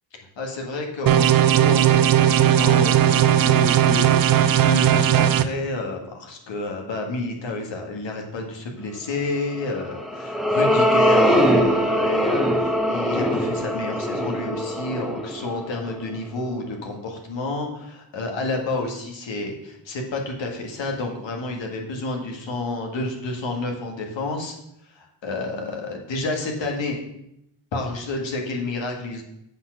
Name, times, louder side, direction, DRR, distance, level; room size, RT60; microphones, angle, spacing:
voice 1, 0.4-24.6 24.9-27.0 27.7-29.2, left 2 dB, 70° left, 2 dB, 1.8 m, -30 dB
sound 1, 1.1-5.4, right 11 dB, 50° right, 0.5 m, -17 dB
sound 2, 9.7-16.3, equal, ahead, 0.9 m, -22 dB
7.6 x 4.1 x 6.3 m, 0.79 s
cardioid pair, 70°, 46 cm